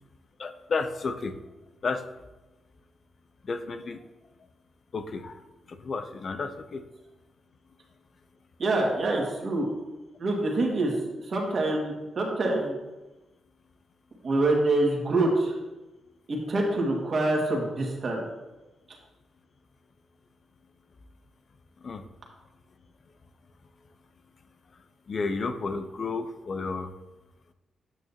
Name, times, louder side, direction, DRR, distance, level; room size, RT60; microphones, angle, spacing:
voice 1, 0.4-1.4 1.8-2.0 3.4-4.0 4.9-5.4 5.7-6.8 21.8-22.0 25.1-26.9, left 4 dB, 55° left, 10 dB, 0.6 m, -32 dB
voice 2, 8.6-9.7 10.2-10.9 11.3-12.7 14.2-15.5 16.3-18.2, right 2 dB, 55° right, -1 dB, 2.0 m, -25 dB
9.0 x 6.3 x 2.9 m, 1.1 s
supercardioid pair, 50°, 0 cm